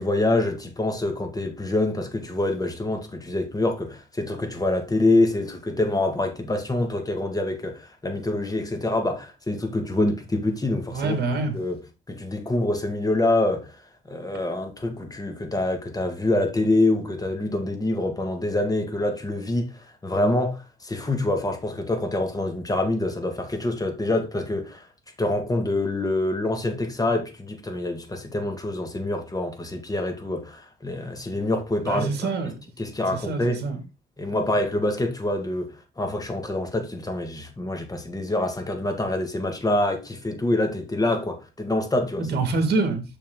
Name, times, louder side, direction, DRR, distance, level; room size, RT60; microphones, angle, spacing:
voice 1, 0.0-11.2 11.5-11.8 12.1-13.7 14.1-24.9 25.2-32.3 32.8-33.6 34.2-42.3, left 2 dB, 20° left, 2.0 m, -26 dB
voice 2, 10.9-11.6 31.8-32.5 33.1-33.8 42.2-43.0, right 3 dB, 55° right, 2.2 m, -25 dB
6.6 x 5.8 x 3.9 m
cardioid pair, 90°, 20 cm